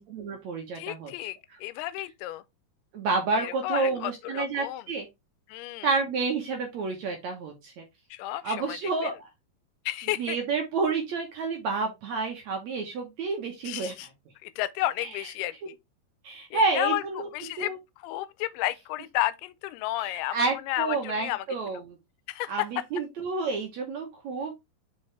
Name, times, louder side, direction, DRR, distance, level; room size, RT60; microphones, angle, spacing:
voice 1, 0.0-1.1 2.9-5.1 5.8-7.8 8.4-9.3 10.2-13.9 15.0-15.1 16.2-17.3 17.6-17.8 20.0-22.0 22.5-24.5, right 4 dB, 65° right, 1.9 m, -29 dB
voice 2, 0.8-2.4 3.3-4.8 5.5-5.9 8.1-9.1 9.9-10.4 13.6-14.1 14.4-15.8 16.5-21.8 22.3-22.7, left 16 dB, 85° left, 2.5 m, -32 dB
5.4 x 5.4 x 3.2 m
omnidirectional pair, 4.5 m